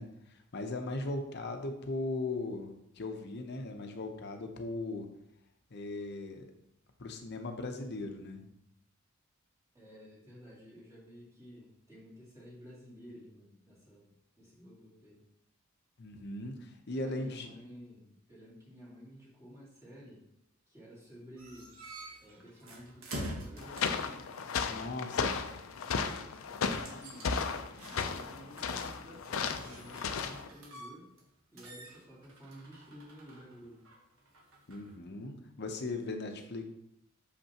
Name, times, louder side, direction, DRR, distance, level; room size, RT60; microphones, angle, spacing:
voice 1, 0.0-5.1 5.7-6.4 7.0-8.4 16.0-17.5 24.7-25.4 34.7-36.6, left 2 dB, 55° left, 5 dB, 0.7 m, -38 dB
voice 2, 9.7-15.2 17.0-20.2 20.7-21.7 22.2-24.3 26.0-31.1 31.5-33.9, equal, 15° right, -8 dB, 2.6 m, -53 dB
sound 1, 21.4-24.1 26.7-28.3 28.6-31.3 31.6-35.0, right 1 dB, 85° right, 1.4 m, -47 dB
sound 2, 23.6-30.5, left 5 dB, 90° left, 0.5 m, -35 dB
6.7 x 5.4 x 2.9 m, 0.79 s
head